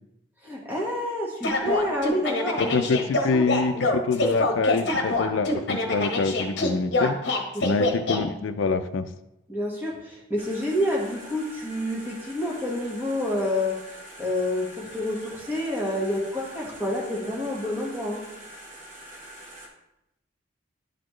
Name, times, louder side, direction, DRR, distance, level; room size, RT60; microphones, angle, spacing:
voice 1, 0.4-2.7 3.3-3.5 7.5-7.8 8.1-8.3 9.5-13.8 14.2-18.2, left 1 dB, 10° right, -4 dB, 1.4 m, -28 dB
sound 1, 1.4-8.2, left 2 dB, 60° left, 1.0 m, -25 dB
voice 2, 2.6-7.2 7.6-9.1, left 4 dB, 80° left, 9 dB, 0.4 m, -25 dB
sound 2, 10.4-19.7, right 1 dB, 40° right, 1.1 m, -45 dB
10.5 x 4.1 x 3.1 m, 0.89 s
head